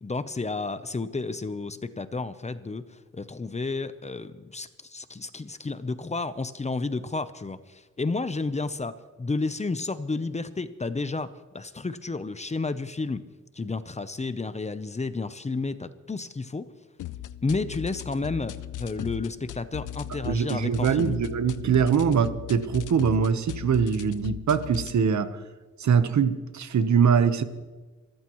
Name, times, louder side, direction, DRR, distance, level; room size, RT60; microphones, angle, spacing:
voice 1, 0.0-13.2 13.5-16.7 17.4-21.2, left 3 dB, 20° left, 12 dB, 0.7 m, -31 dB
sound 1, 17.0-25.0, left 12 dB, 80° left, 0.6 m, -38 dB
voice 2, 20.3-25.3 25.8-27.4, right 6 dB, 70° right, 11 dB, 1.1 m, -23 dB
24.5 x 14.5 x 3.1 m, 1.3 s
cardioid pair, 100°, 30 cm